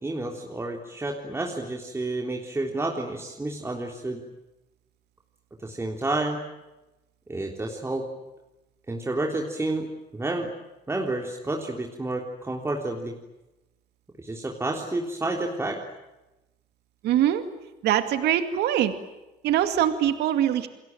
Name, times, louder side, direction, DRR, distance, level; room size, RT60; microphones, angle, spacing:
voice 1, 0.0-4.2 5.6-6.4 7.3-8.0 8.9-9.9 10.1-10.5 10.9-13.2 14.2-15.8, right 2 dB, 15° right, 0 dB, 3.6 m, -30 dB
voice 2, 17.0-17.4 17.8-18.9 19.4-20.7, right 11 dB, 80° right, 8 dB, 2.3 m, -23 dB
29.0 x 22.0 x 9.2 m, 1.0 s
cardioid pair, 110°, 17 cm